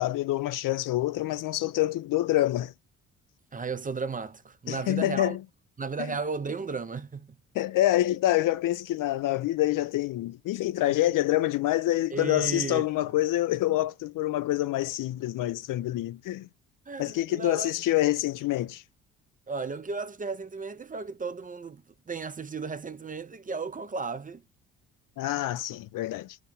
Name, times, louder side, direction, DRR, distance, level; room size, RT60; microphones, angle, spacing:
voice 1, 0.0-2.7 4.7-5.4 7.5-16.5 17.0-18.8 25.2-26.4, left 15 dB, 55° left, 0.5 m, -26 dB
voice 2, 3.5-5.4 5.8-7.4 10.9-11.0 12.1-12.8 16.9-17.7 19.5-24.4, right 4 dB, 20° right, 0.6 m, -34 dB
2.9 x 2.6 x 3.6 m
hypercardioid pair, 45°, 39 cm